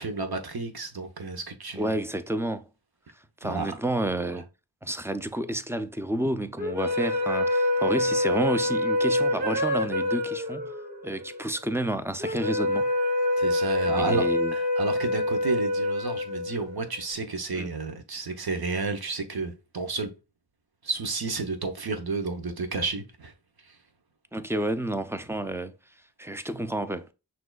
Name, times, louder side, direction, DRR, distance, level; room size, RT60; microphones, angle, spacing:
voice 1, 0.0-2.0 3.4-3.7 4.3-4.4 13.4-20.1 20.8-23.3 23.6-23.8, right 3 dB, 50° right, 1.0 m, -31 dB
voice 2, 1.7-2.6 3.4-4.4 4.8-10.7 11.0-12.9 13.8-14.5 17.6-17.7 24.3-25.7 26.2-27.1, right 1 dB, 5° right, 0.5 m, -30 dB
sound 1, 6.6-17.0, left 1 dB, 25° right, 1.4 m, -26 dB
6.0 x 2.9 x 2.3 m
cardioid pair, 45°, 46 cm